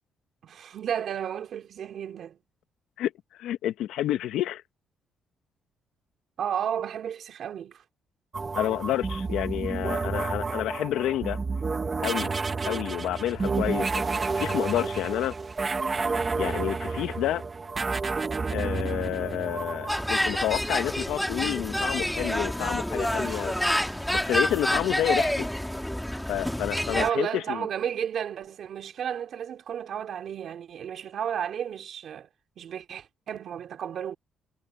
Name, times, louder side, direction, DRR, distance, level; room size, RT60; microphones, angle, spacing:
voice 1, 0.4-2.4 6.4-7.8 12.6-12.9 13.4-13.8 26.9-32.3 32.6-34.2, right 9 dB, 65° right, 3.5 m, -33 dB
voice 2, 3.4-4.6 8.5-11.4 12.0-12.3 12.6-15.3 16.4-17.4 18.5-23.5 24.1-25.5 26.3-27.7, left 12 dB, 85° left, 1.3 m, -29 dB
sound 1, 8.3-20.9 22.9-24.6, right 4 dB, 30° right, 1.3 m, -31 dB
sound 2, 19.9-27.1, equal, 5° left, 2.0 m, -28 dB
cardioid pair, 90°, 0 cm